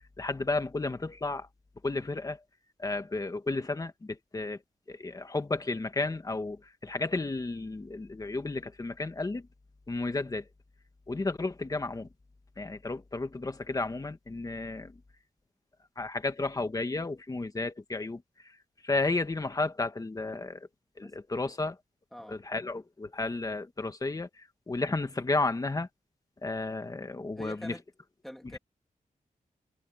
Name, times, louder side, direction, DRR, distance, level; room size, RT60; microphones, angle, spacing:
voice 1, 0.2-1.5 1.8-2.4 2.8-4.6 4.9-9.5 9.9-10.4 11.1-12.1 12.6-15.0 16.0-18.2 18.8-20.6 21.0-21.8 22.3-25.9 26.4-27.8, left 3 dB, 25° left, 1.7 m, -32 dB
voice 2, 27.4-27.8 28.2-28.6, equal, ahead, 2.6 m, -45 dB
wide cardioid pair, 165°, 14 cm